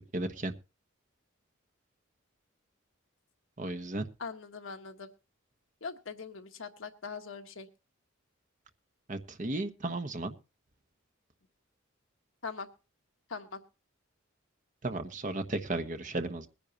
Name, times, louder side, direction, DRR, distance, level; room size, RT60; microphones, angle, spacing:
voice 1, 0.1-0.5 3.6-4.1 9.1-10.4 14.8-16.5, right 2 dB, 40° right, 7 dB, 1.1 m, -34 dB
voice 2, 4.2-5.1 5.8-7.7 12.4-12.7 13.3-13.6, left 5 dB, 70° left, 6 dB, 1.3 m, -41 dB
21.5 x 10.0 x 2.8 m, 0.31 s
head